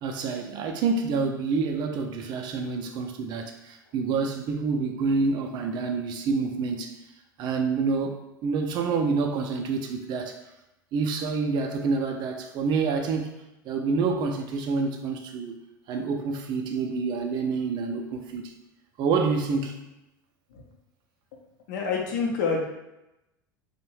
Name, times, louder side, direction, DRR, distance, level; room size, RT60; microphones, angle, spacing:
voice 1, 0.0-6.9 7.4-8.2 8.4-10.4 10.9-13.3 13.6-15.6 15.9-18.5 19.0-19.8, right 4 dB, 40° right, 4 dB, 0.4 m, -27 dB
voice 2, 21.7-22.6, left 5 dB, 60° left, 0 dB, 0.6 m, -27 dB
2.5 x 2.1 x 3.0 m, 0.94 s
figure-of-eight pair, 80°, 11 cm